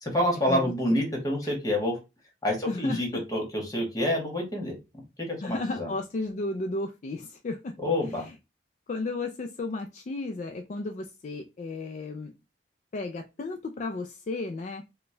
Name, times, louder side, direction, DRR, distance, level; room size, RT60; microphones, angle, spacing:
voice 1, 0.0-2.0 2.4-4.8 5.2-5.9 7.8-8.3, left 1 dB, 20° left, 1 dB, 1.3 m, -27 dB
voice 2, 2.7-3.2 5.4-7.7 8.1-8.3 8.9-12.3 12.9-14.8, left 2 dB, 45° left, 5 dB, 0.4 m, -34 dB
4.2 x 2.2 x 3.2 m, 0.26 s
head